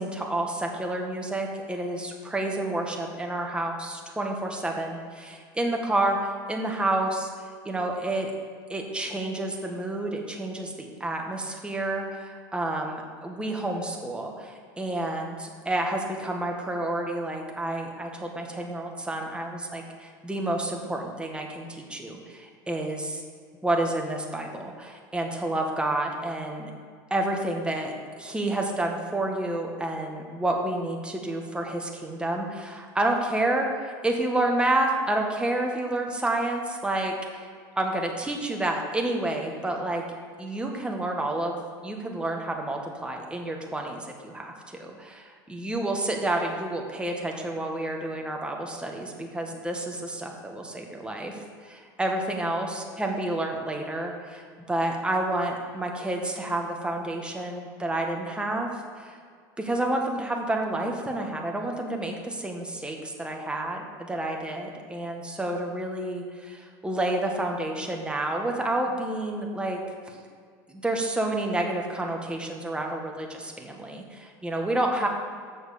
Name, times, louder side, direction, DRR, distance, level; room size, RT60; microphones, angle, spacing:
voice 1, 0.0-7.3 7.6-8.4 8.7-23.2 23.6-26.7 27.1-40.0 40.4-41.6 41.8-58.7 59.0-59.2 59.6-70.2 70.7-75.1, right 1 dB, 10° right, 1 dB, 1.7 m, -29 dB
7.4 x 6.4 x 6.6 m, 2.1 s
supercardioid pair, 95°, 11 cm